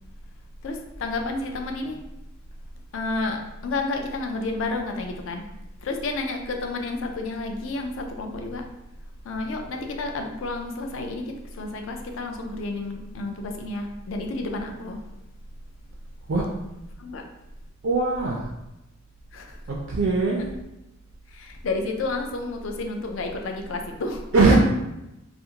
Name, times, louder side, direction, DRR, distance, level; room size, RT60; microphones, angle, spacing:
voice 1, 0.6-2.0 2.9-5.4 5.8-8.6 9.2-15.0 17.0-17.2 19.3-19.6 21.3-24.3, left 2 dB, 65° left, 3 dB, 0.4 m, -30 dB
voice 2, 17.8-18.5 19.7-20.5 24.3-24.5, right 3 dB, 65° right, -2 dB, 0.4 m, -21 dB
2.5 x 2.4 x 2.8 m, 0.92 s
head